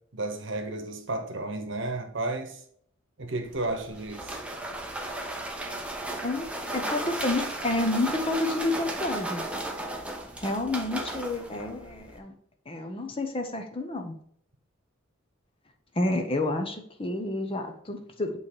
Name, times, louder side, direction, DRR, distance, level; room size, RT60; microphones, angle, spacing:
voice 1, 0.1-2.6 3.2-4.4, right 2 dB, 60° right, 6 dB, 1.0 m, -32 dB
sound 1, 3.4-12.2, right 1 dB, 5° right, 0.7 m, -35 dB
voice 2, 6.2-9.4 10.4-12.3 12.7-14.1 15.9-18.4, left 2 dB, 25° left, 4 dB, 0.8 m, -29 dB
8.3 x 3.2 x 4.6 m, 0.64 s
head